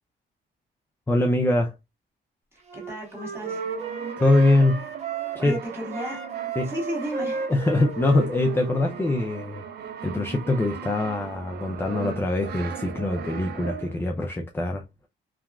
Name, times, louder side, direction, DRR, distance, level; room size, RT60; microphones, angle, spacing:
voice 1, 1.1-1.7 4.2-4.9 5.4-5.6 6.6-6.7 7.5-9.6 10.0-14.8, left 2 dB, 10° left, 0.4 m, -23 dB
voice 2, 2.5-3.6 5.4-6.2 6.6-7.5, equal, 10° right, 1.6 m, -33 dB
Wind instrument woodwind instrument, 2.7-5.6 5.9-9.3, right 5 dB, 35° right, 1.0 m, -33 dB
Brass instrument, 3.3-14.1, right 7 dB, 55° right, 0.5 m, -39 dB
2.8 x 2.3 x 2.3 m
cardioid pair, 90°, 20 cm